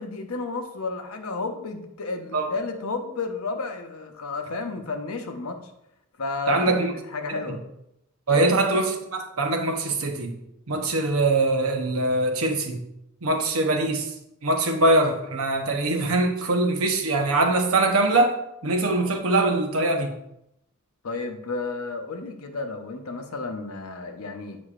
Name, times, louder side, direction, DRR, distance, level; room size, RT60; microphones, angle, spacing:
voice 1, 0.0-5.6 6.2-7.6 8.3-8.5 21.0-24.6, left 3 dB, 80° left, 5 dB, 0.8 m, -32 dB
voice 2, 6.5-6.9 7.3-7.6 8.3-10.4 10.7-12.8 13.2-14.1 14.4-18.4 18.6-20.1, right 2 dB, 75° right, 5 dB, 0.8 m, -23 dB
8.3 x 5.2 x 2.5 m, 0.82 s
head